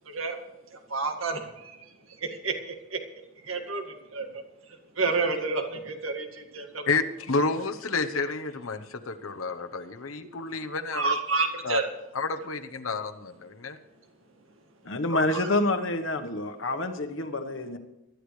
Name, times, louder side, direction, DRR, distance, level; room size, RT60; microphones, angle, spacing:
voice 1, 0.1-0.4 0.7-1.9 2.2-3.0 3.4-3.8 4.1-4.4 5.0-6.8 10.9-11.9 15.3-15.5, right 4 dB, 80° right, 5 dB, 2.0 m, -30 dB
voice 2, 6.9-11.2 11.6-11.8 12.1-13.8 15.1-15.2, left 3 dB, 90° left, 7 dB, 1.0 m, -30 dB
voice 3, 14.8-17.8, left 2 dB, 65° left, 6 dB, 1.3 m, -27 dB
23.5 x 12.0 x 3.3 m, 0.96 s
head